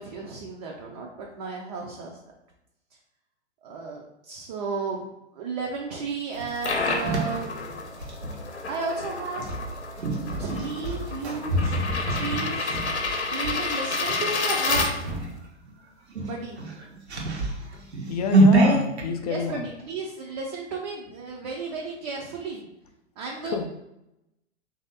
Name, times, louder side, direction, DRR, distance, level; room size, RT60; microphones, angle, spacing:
voice 1, 0.0-2.2 3.6-5.1 5.3-7.9 8.7-9.4 10.4-11.8 12.1-12.8 13.3-15.2 16.3-16.6 19.2-22.7 23.2-23.6, right 4 dB, 35° right, -1 dB, 0.5 m, -33 dB
sound 1, 6.4-15.3, left 4 dB, 70° left, 0.7 m, -30 dB
sound 2, 6.4-8.4 9.3-13.6 14.1-14.3 14.7-15.4 15.7-15.8 16.1-19.1, right 2 dB, 70° right, 0.8 m, -25 dB
voice 2, 18.1-19.7 23.4-23.6, left 5 dB, 35° left, 7 dB, 0.4 m, -28 dB
3.2 x 2.7 x 3.9 m, 0.88 s
figure-of-eight pair, 105°, 34 cm